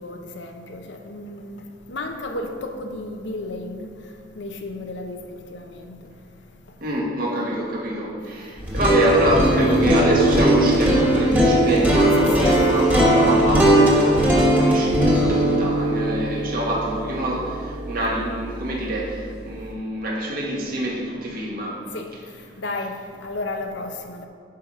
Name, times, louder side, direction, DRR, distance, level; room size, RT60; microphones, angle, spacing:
voice 1, 0.0-3.9 4.4-6.0 9.4-9.7 12.2-12.7 21.9-22.1 22.6-24.3, left 2 dB, 90° left, 0.9 m, -33 dB
voice 2, 6.8-21.8, right 1 dB, 50° right, 1.9 m, -25 dB
sound 1, 8.6-18.6, right 1 dB, 10° right, 1.6 m, -19 dB
10.5 x 5.7 x 5.0 m
head